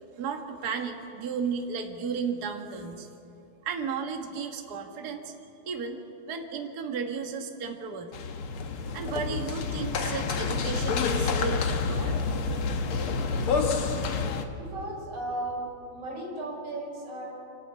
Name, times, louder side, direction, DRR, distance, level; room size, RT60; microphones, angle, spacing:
voice 1, 0.2-3.1 3.6-5.3 5.7-6.0 6.3-8.1 8.9-12.2, right 5 dB, 75° right, 4 dB, 0.9 m, -34 dB
sound 1, 8.1-14.4, left 4 dB, 80° left, 1.2 m, -28 dB
voice 2, 14.5-15.6 15.9-17.3, right 1 dB, 40° right, -3 dB, 6.3 m, -35 dB
26.5 x 12.5 x 8.9 m, 2.8 s
omnidirectional pair, 4.3 m